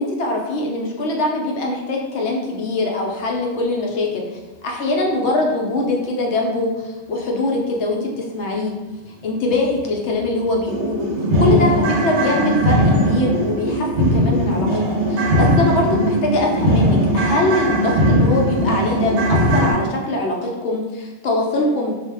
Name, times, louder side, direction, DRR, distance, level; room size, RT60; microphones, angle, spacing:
voice 1, 0.0-8.7 9.2-11.1 11.4-14.8 15.1-21.9, left 2 dB, 75° left, 0 dB, 0.9 m, -22 dB
sound 1, 9.7-9.8 10.2-10.3 10.7-19.7, equal, 75° right, 0.9 m, -19 dB
2.4 x 2.0 x 3.3 m, 1.2 s
omnidirectional pair, 1.2 m